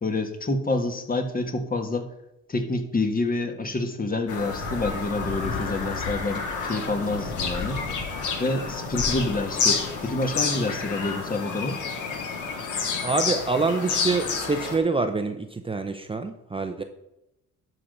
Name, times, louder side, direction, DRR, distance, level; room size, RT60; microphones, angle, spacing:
voice 1, 0.0-2.1 2.5-7.8 8.4-11.8, left 2 dB, 30° left, 6 dB, 1.4 m, -28 dB
Bird vocalization bird call bird song, 4.3-14.8, left 5 dB, 80° left, 1.7 m, -29 dB
voice 2, 13.0-16.8, right 3 dB, 20° right, 6 dB, 0.7 m, -26 dB
11.5 x 3.9 x 6.5 m, 0.87 s
cardioid pair, 90°, 30 cm